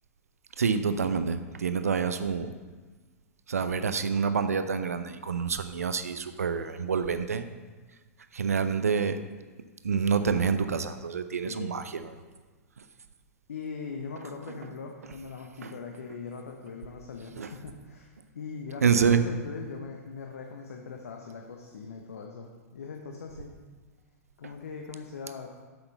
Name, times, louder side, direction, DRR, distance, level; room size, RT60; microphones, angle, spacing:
voice 1, 0.6-2.5 3.5-7.5 8.3-9.2 9.8-12.1 15.6-15.7 17.4-17.5 18.8-19.2, right 6 dB, 75° right, 11 dB, 0.5 m, -27 dB
voice 2, 13.5-23.5 24.4-25.5, left 5 dB, 70° left, 2 dB, 0.9 m, -40 dB
7.8 x 6.9 x 5.3 m, 1.3 s
figure-of-eight pair, 100°, 8 cm